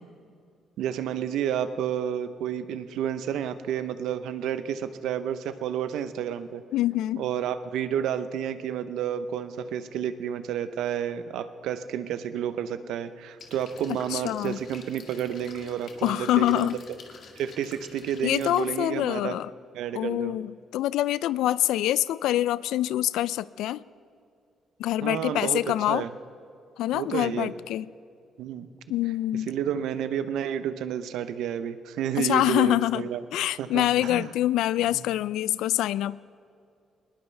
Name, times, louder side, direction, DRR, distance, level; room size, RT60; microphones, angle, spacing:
voice 1, 0.8-6.6 7.2-16.7 17.4-19.4 19.7-20.4 25.0-25.6 25.9-26.1 26.9-27.5 28.4-28.7 29.5-33.2 33.6-34.3, right 9 dB, 85° right, 11 dB, 0.8 m, -30 dB
voice 2, 6.7-7.2 14.1-14.6 16.0-16.8 18.2-19.5 19.9-23.8 24.8-26.0 26.8-27.9 28.9-29.5 32.2-36.2, left 14 dB, 90° left, 19 dB, 0.3 m, -25 dB
sound 1, 13.4-18.8, left 5 dB, 65° left, 1.9 m, -49 dB
20.0 x 19.0 x 3.4 m, 2.4 s
cardioid pair, 90°, 0 cm